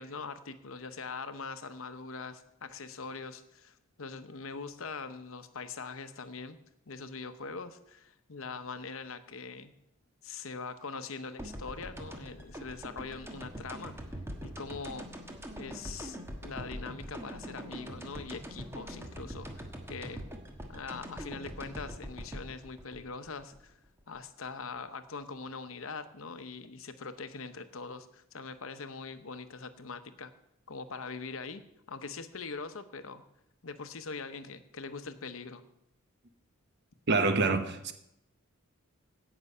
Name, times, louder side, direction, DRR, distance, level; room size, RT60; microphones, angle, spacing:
voice 1, 0.0-6.6 6.9-9.7 10.2-15.1 15.6-20.2 20.7-23.7 24.1-30.3 30.7-31.6 31.9-33.2 33.6-35.6, left 4 dB, 70° left, 0.9 m, -42 dB
sound 1, 11.4-24.2, equal, 10° right, 1.3 m, -43 dB
voice 2, 37.1-37.9, right 3 dB, 55° right, 1.0 m, -26 dB
16.5 x 6.1 x 5.5 m
head